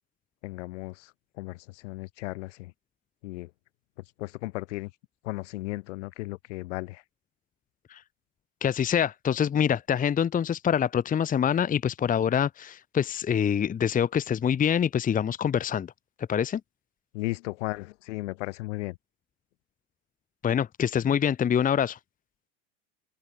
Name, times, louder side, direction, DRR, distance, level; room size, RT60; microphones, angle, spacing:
voice 1, 0.4-1.1 1.4-2.7 3.2-3.5 4.2-4.9 5.2-7.0 17.1-19.0, left 20 dB, 70° left, 3.9 m, -35 dB
voice 2, 8.6-15.9 16.3-16.6 20.4-22.0, left 8 dB, 20° left, 1.1 m, -25 dB
hypercardioid pair, 110°, 37 cm